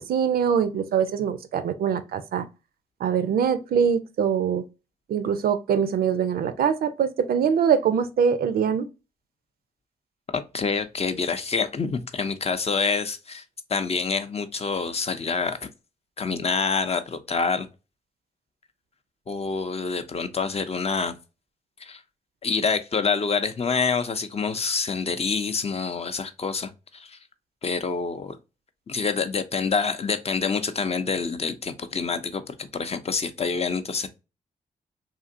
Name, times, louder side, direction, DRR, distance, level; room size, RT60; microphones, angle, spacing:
voice 1, 0.0-2.5 3.0-4.6 5.1-8.9, right 7 dB, 65° right, 0.4 m, -23 dB
voice 2, 10.3-13.4 13.7-15.7 16.2-17.7 19.3-21.1 21.8-22.0 22.4-27.2 27.6-28.4 28.9-34.1, left 5 dB, 40° left, 0.5 m, -27 dB
2.8 x 2.5 x 2.5 m
hypercardioid pair, 40°, 17 cm